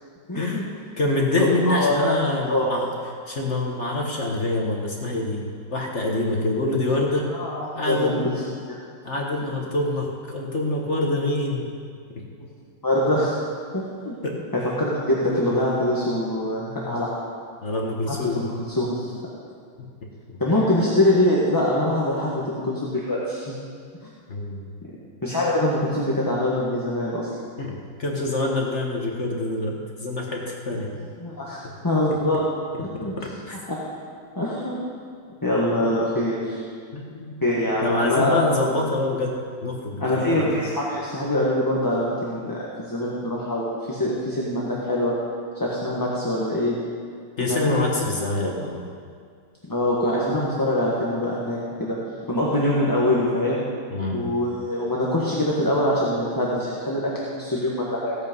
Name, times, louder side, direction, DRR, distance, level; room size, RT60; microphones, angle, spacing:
voice 1, 0.3-0.6 1.4-2.1 2.5-2.7 7.3-8.3 12.8-13.4 13.7-14.1 14.5-17.1 18.1-19.1 20.4-23.6 25.2-27.3 31.2-31.6 31.8-32.5 32.8-33.1 33.7-33.8 34.3-34.8 35.4-36.6 37.4-38.4 40.0-45.1 45.5-46.8 47.4-47.9 48.4-48.5 49.7-52.0 52.3-53.6 54.1-58.2, left 1 dB, 10° left, -6 dB, 1.3 m, -24 dB
voice 2, 1.0-2.9 3.3-5.4 5.7-7.3 7.7-8.2 9.0-11.7 12.1-12.2 14.2-14.3 17.6-18.5 24.3-24.6 27.6-30.9 31.6-31.7 32.9-33.6 35.8-35.9 36.9-37.4 37.8-40.5 47.4-48.8 53.9-54.3, left 2 dB, 40° left, -1 dB, 1.5 m, -26 dB
16.0 x 8.6 x 5.4 m, 2.1 s
omnidirectional pair, 2.0 m